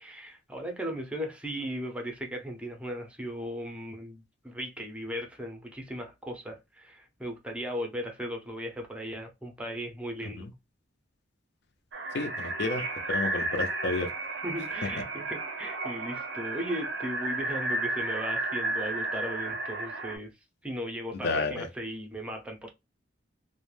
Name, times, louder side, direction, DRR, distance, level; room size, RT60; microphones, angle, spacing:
voice 1, 0.0-10.5 14.4-20.3 20.6-22.7, equal, 5° right, 0.5 m, -37 dB
sound 1, 11.9-20.2, right 2 dB, 65° right, 0.6 m, -33 dB
voice 2, 12.1-12.8 13.1-14.1 14.8-14.9 21.2-21.7, left 3 dB, 60° left, 0.4 m, -31 dB
2.3 x 2.1 x 3.1 m
head